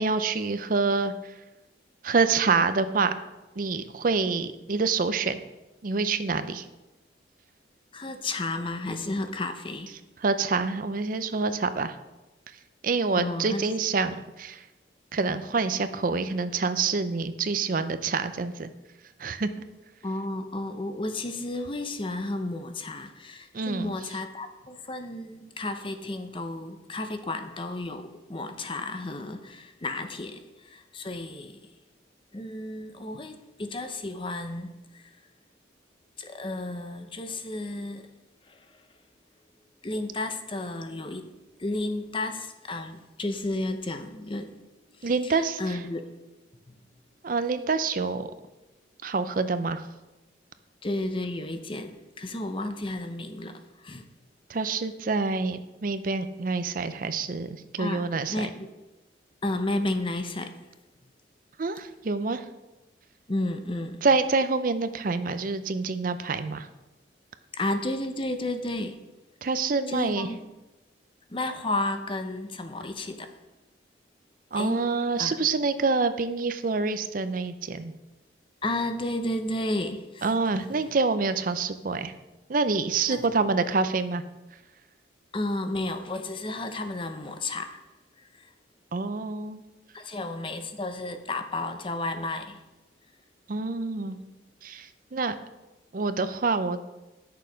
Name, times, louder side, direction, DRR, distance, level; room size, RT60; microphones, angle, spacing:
voice 1, 0.0-1.3 2.0-3.2 3.6-5.4 5.8-6.7 10.2-12.0 12.8-14.6 15.1-18.7 19.2-19.5 23.5-23.9 45.0-45.8 47.2-48.3 49.0-49.8 54.5-58.5 61.6-62.4 64.0-66.7 69.4-70.3 74.5-77.9 80.2-82.1 82.5-84.2 88.9-89.6 93.5-94.2 94.6-95.3 95.9-96.8, right 4 dB, 45° right, 11 dB, 0.5 m, -27 dB
voice 2, 7.9-10.0 13.2-13.6 20.0-31.6 32.3-35.0 36.2-38.1 38.5-38.6 39.8-44.6 44.9-46.1 46.7-46.8 50.8-54.1 57.8-58.7 59.4-60.6 63.3-64.0 67.5-69.0 69.9-70.5 71.3-73.4 74.5-74.8 75.2-75.4 78.6-80.3 83.1-83.3 85.3-87.8 88.2-88.5 89.9-92.6 94.0-94.2, left 2 dB, 25° left, 8 dB, 0.7 m, -32 dB
10.5 x 6.7 x 5.1 m, 1.1 s
head